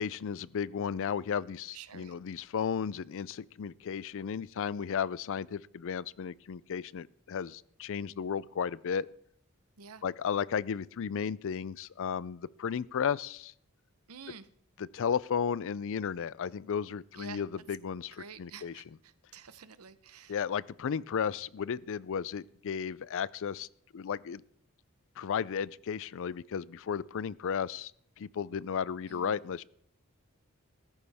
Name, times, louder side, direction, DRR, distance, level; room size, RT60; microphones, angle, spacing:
voice 1, 0.0-9.1 10.0-13.5 14.8-18.8 20.3-23.7 23.9-24.4 25.2-27.9 28.2-29.6, left 7 dB, 65° left, 21 dB, 0.4 m, -34 dB
voice 2, 1.7-2.1 9.8-10.0 14.1-14.5 17.1-17.4 18.2-20.4 29.1-29.4, right 6 dB, 85° right, 13 dB, 0.9 m, -49 dB
15.5 x 14.0 x 3.5 m, 0.64 s
head